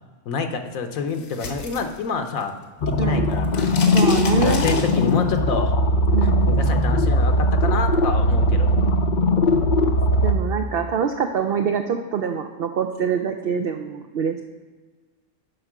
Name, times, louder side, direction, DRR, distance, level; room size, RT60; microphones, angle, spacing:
voice 1, 0.3-2.6 3.0-3.7 4.4-5.7 6.5-8.7, left 5 dB, 70° left, 6 dB, 1.1 m, -27 dB
sound 1, 0.9-2.6 2.9-5.4, left 3 dB, 85° left, 1.7 m, -32 dB
sound 2, 2.8-10.4, left 1 dB, 50° left, 0.5 m, -19 dB
voice 2, 3.0-3.4 3.9-4.7 6.1-6.3 10.2-14.4, right 7 dB, 70° right, 5 dB, 0.5 m, -24 dB
8.0 x 5.6 x 5.9 m, 1.4 s
omnidirectional pair, 1.6 m